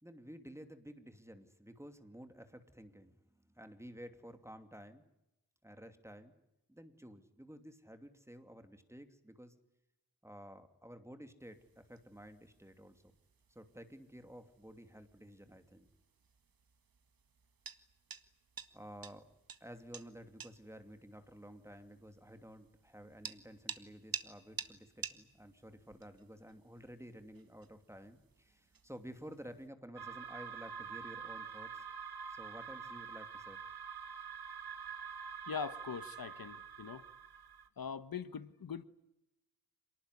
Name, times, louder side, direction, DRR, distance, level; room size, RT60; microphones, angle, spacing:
voice 1, 0.0-3.2 3.5-5.0 5.6-6.3 6.7-9.5 10.2-13.0 13.5-15.9 18.7-19.3 19.6-31.8 32.3-33.6, equal, 5° right, 2.7 m, -52 dB
sound 1, 11.4-29.7, right 6 dB, 70° right, 1.8 m, -52 dB
sound 2, 30.0-37.7, right 6 dB, 85° right, 1.8 m, -46 dB
voice 2, 35.5-37.0 37.8-38.8, left 6 dB, 70° left, 1.3 m, -42 dB
28.0 x 19.5 x 9.9 m
wide cardioid pair, 110°, 37 cm